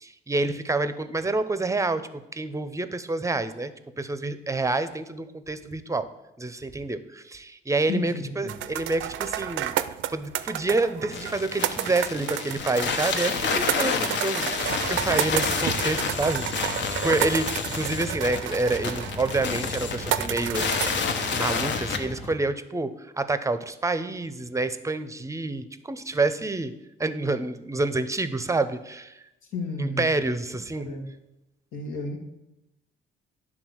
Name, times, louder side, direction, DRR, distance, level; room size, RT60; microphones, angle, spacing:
voice 1, 0.0-6.1 6.4-9.8 10.1-20.7 21.3-26.7 27.0-29.2 29.8-30.9, right 2 dB, 15° right, 12 dB, 0.6 m, -28 dB
voice 2, 7.9-8.6 29.5-30.1 30.8-31.1 31.7-32.2, left 2 dB, 85° left, 2 dB, 1.6 m, -32 dB
sound 1, 8.5-21.7, right 12 dB, 75° right, 0.5 m, -31 dB
sound 2, 11.1-22.0, left 5 dB, 65° left, 0.9 m, -29 dB
sound 3, 14.6-22.3, left 1 dB, 30° left, 1.1 m, -38 dB
10.0 x 3.7 x 6.3 m, 0.91 s
cardioid pair, 90°, 20 cm